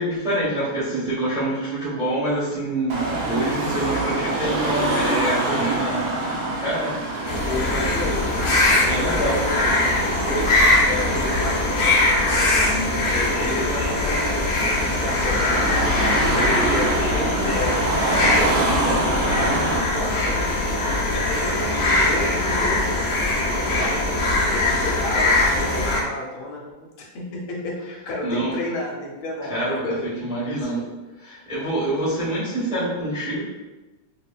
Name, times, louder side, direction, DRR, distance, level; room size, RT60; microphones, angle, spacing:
voice 1, 0.0-6.1 6.5-7.0 7.7-7.8 8.8-9.4 28.2-28.5 29.5-29.9 30.2-30.8 31.2-33.4, right 1 dB, 5° right, -9 dB, 0.5 m, -26 dB
Car passing by / Traffic noise roadway noise / Engine, 2.9-19.8, right 2 dB, 65° right, 0.8 m, -26 dB
sound 1, 7.2-26.0, left 2 dB, 65° left, 0.9 m, -21 dB
voice 2, 7.4-8.4 8.9-10.5 10.8-14.4 14.8-17.8 18.2-20.8 21.1-22.8 23.7-23.9 24.3-30.9, left 2 dB, 85° left, -2 dB, 1.7 m, -32 dB
6.1 x 2.1 x 2.3 m, 1.2 s
omnidirectional pair, 2.3 m